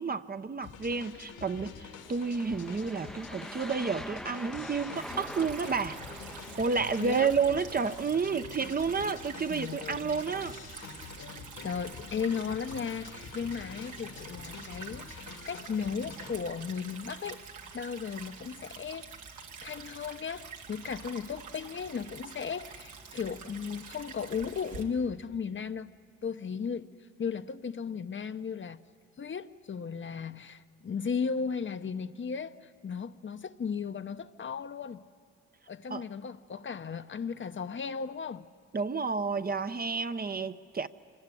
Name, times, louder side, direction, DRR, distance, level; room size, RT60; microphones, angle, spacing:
voice 1, 0.0-6.0 6.6-10.6 35.9-36.1 38.7-40.9, right 5 dB, 30° right, 0.8 m, -30 dB
sound 1, 0.6-16.7, left 5 dB, 80° left, 2.4 m, -47 dB
sound 2, 2.0-7.4, equal, ahead, 0.7 m, -44 dB
Stream / Trickle dribble, 5.0-24.8, right 5 dB, 80° right, 2.3 m, -47 dB
voice 2, 7.0-7.3 9.5-10.1 11.6-17.4 17.7-19.1 19.6-25.9 26.2-28.8 29.2-35.0 35.7-38.4, left 6 dB, 40° left, 0.8 m, -36 dB
25.0 x 19.0 x 9.9 m
supercardioid pair, 60°, 30 cm